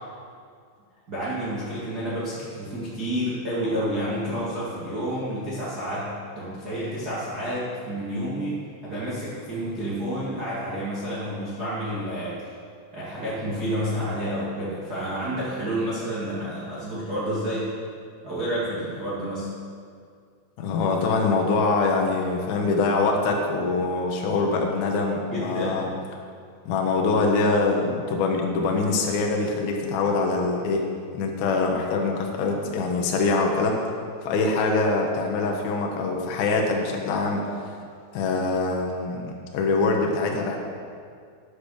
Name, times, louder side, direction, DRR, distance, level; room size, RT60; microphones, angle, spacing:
voice 1, 1.1-8.5 8.8-12.4 12.9-17.7 18.2-19.5 25.3-25.8, equal, 55° right, -10 dB, 1.1 m, -29 dB
voice 2, 20.6-25.9 26.7-30.8 31.1-33.8 34.2-37.5 38.1-40.6, left 3 dB, 75° left, 1 dB, 2.2 m, -24 dB
9.9 x 8.2 x 6.5 m, 2.2 s
omnidirectional pair, 5.8 m